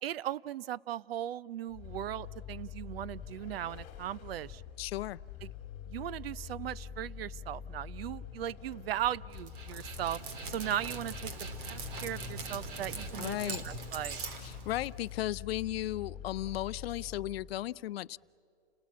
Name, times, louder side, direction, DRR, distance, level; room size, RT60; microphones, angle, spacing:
voice 1, 0.0-4.6 5.4-5.5 5.9-10.2 10.5-14.2, right 12 dB, 75° right, 21 dB, 0.6 m, -38 dB
Vehicle, 1.7-17.6, left 9 dB, 25° left, 2.3 m, -46 dB
voice 2, 4.8-5.2 13.2-13.6 14.4-18.2, left 14 dB, 85° left, 19 dB, 0.5 m, -35 dB
Dog, 9.3-15.1, right 3 dB, 60° right, 3.1 m, -42 dB
29.5 x 19.0 x 8.5 m, 2.6 s
supercardioid pair, 155°, 30 cm